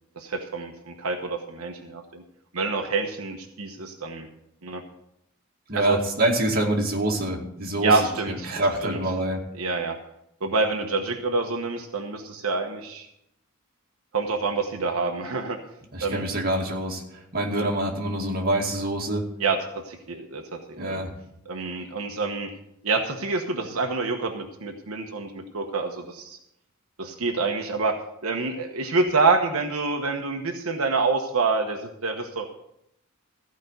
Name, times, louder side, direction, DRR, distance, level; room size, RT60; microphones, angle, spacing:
voice 1, 0.2-2.2 2.5-4.3 4.6-4.8 5.7-6.0 7.8-9.0 9.6-10.0 10.4-13.1 14.1-15.6 16.0-16.2 17.6-17.7 19.4-21.0 21.5-22.5 22.8-26.4 27.0-28.0 28.2-32.5, right 3 dB, 80° right, 3 dB, 1.1 m, -27 dB
voice 2, 5.7-9.4 15.9-19.3 20.8-21.1, right 1 dB, 45° right, 0 dB, 2.2 m, -26 dB
15.0 x 5.2 x 8.0 m, 0.79 s
head